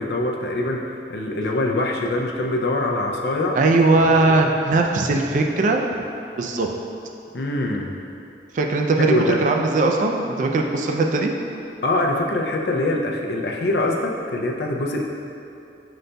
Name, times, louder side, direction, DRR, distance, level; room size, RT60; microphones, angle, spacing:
voice 1, 0.0-3.6 4.1-4.2 7.3-8.0 9.0-9.4 11.8-15.0, left 1 dB, 65° left, 0 dB, 0.4 m, -23 dB
voice 2, 3.5-5.8 6.3-6.7 8.5-11.3, right 2 dB, 45° right, 2 dB, 0.3 m, -19 dB
5.1 x 3.9 x 2.2 m, 2.6 s
head